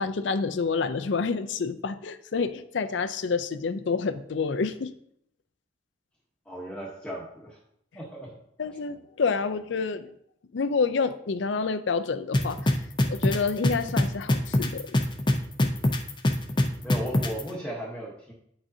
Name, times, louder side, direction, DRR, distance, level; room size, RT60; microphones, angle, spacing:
voice 1, 0.0-4.9 8.6-10.1 10.5-12.8 13.1-15.0 15.6-15.7, left 4 dB, 70° left, 12 dB, 0.5 m, -28 dB
voice 2, 6.5-7.6 7.9-8.3 16.8-18.3, equal, 5° left, -5 dB, 1.0 m, -36 dB
sound 1, 12.3-17.4, left 1 dB, 25° left, 0.6 m, -22 dB
9.3 x 6.2 x 2.7 m, 0.72 s
head